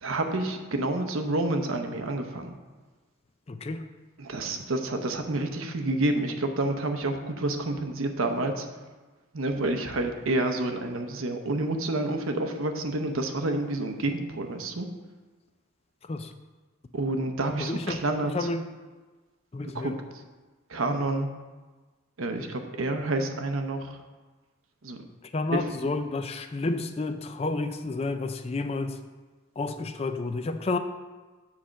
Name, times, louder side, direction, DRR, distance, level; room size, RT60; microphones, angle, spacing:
voice 1, 0.0-2.6 4.2-8.7 9.3-14.9 16.9-18.5 19.7-19.9 20.7-21.3 22.2-24.0 24.8-25.0 25.5-25.9, right 2 dB, 80° right, 5 dB, 0.8 m, -29 dB
voice 2, 3.5-3.8 16.1-16.3 17.6-18.0 18.3-18.6 19.5-20.0 25.3-28.9 29.6-30.8, left 3 dB, 30° left, 9 dB, 0.4 m, -30 dB
7.4 x 4.3 x 6.3 m, 1.3 s
head